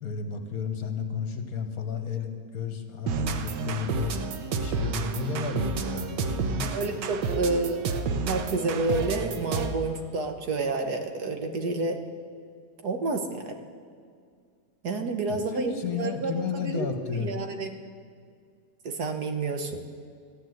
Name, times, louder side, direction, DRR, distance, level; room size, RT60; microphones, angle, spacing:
voice 1, 0.0-2.3 2.5-4.2 4.5-6.9 15.3-17.3 19.7-19.8, left 5 dB, 60° left, 6 dB, 1.6 m, -32 dB
sound 1, 3.1-9.9, right 4 dB, 85° right, 1.5 m, -30 dB
voice 2, 6.7-7.8 8.3-12.0 12.8-13.6 14.8-16.9 17.1-17.8 18.9-19.8, right 3 dB, 70° right, 6 dB, 1.7 m, -29 dB
14.5 x 10.0 x 8.0 m, 2.1 s
omnidirectional pair, 1.8 m